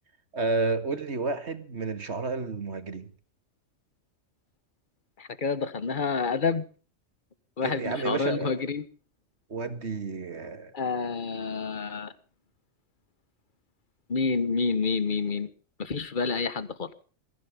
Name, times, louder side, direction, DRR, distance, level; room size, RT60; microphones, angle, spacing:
voice 1, 0.3-3.1 7.6-8.6 9.5-10.7, right 3 dB, 55° right, 2.1 m, -31 dB
voice 2, 5.2-6.6 7.6-8.8 10.7-12.1 14.1-15.5 15.8-16.9, left 4 dB, 40° left, 1.4 m, -28 dB
21.5 x 15.0 x 3.6 m
omnidirectional pair, 1.3 m